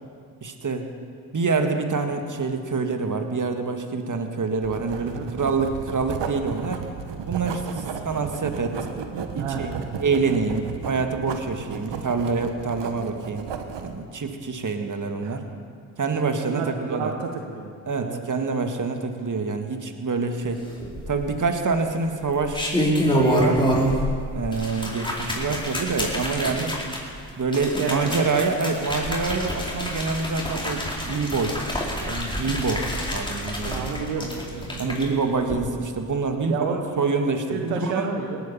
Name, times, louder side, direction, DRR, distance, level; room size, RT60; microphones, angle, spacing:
voice 1, 0.4-0.9 1.3-6.9 7.3-8.9 9.3-9.7 10.0-13.5 13.8-15.4 16.0-17.1 17.9-20.6 21.1-22.8 23.1-23.7 24.3-26.8 27.4-31.6 32.0-32.9 33.1-33.8 34.8-36.7 37.0-38.1, right 4 dB, 40° right, 6 dB, 1.9 m, -26 dB
Writing, 4.6-14.0, right 6 dB, 60° right, 1.4 m, -34 dB
voice 2, 4.9-5.3 9.4-9.8 15.2-15.4 16.5-18.3 26.5-26.7 27.8-28.3 33.6-35.2 36.5-37.1 37.5-38.4, right 6 dB, 85° right, 3 dB, 1.3 m, -31 dB
sound 1, 20.8-21.5 22.3-24.1 24.4-35.0 35.4-35.5, equal, 10° left, 4.4 m, -27 dB
18.0 x 9.7 x 7.2 m, 2.2 s
hypercardioid pair, 40°, 48 cm